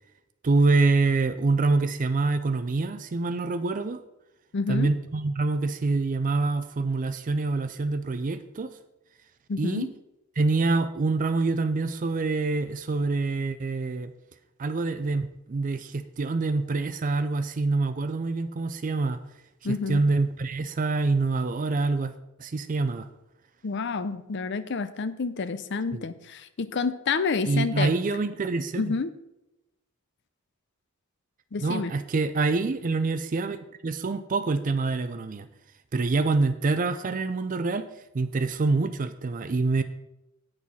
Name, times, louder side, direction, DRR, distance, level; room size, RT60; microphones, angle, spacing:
voice 1, 0.4-4.0 4.7-8.8 9.6-9.9 10.4-14.1 14.6-19.2 19.9-22.1 22.4-23.1 25.9-26.0 27.5-28.9 31.6-33.6 33.8-35.5 35.9-37.9 38.1-39.8, right 3 dB, 40° right, 10 dB, 0.4 m, -26 dB
voice 2, 4.5-4.9 9.5-9.9 19.6-20.0 23.6-27.9 28.8-29.1 31.5-31.9, left 4 dB, 60° left, 14 dB, 0.6 m, -29 dB
8.9 x 6.2 x 5.6 m, 0.92 s
head